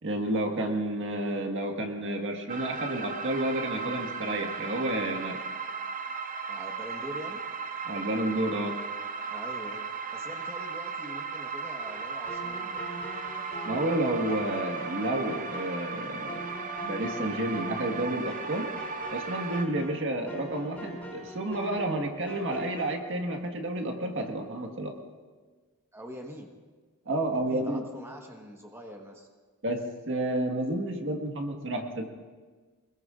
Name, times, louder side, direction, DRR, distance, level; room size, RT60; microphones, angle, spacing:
voice 1, 0.0-5.5 7.8-8.8 13.6-16.5 16.8-18.7 19.1-24.9 27.0-27.8 29.6-32.1, right 1 dB, 55° right, 3 dB, 1.6 m, -30 dB
sound 1, 2.5-19.6, right 4 dB, 35° right, 0.7 m, -36 dB
voice 2, 6.5-7.4 9.3-12.8 19.6-19.9 25.9-26.6 27.3-29.3, equal, 10° right, 1 dB, 1.3 m, -44 dB
sound 2, 11.8-22.9, right 1 dB, 5° left, 4.7 m, -42 dB
25.0 x 20.5 x 2.5 m, 1.4 s
head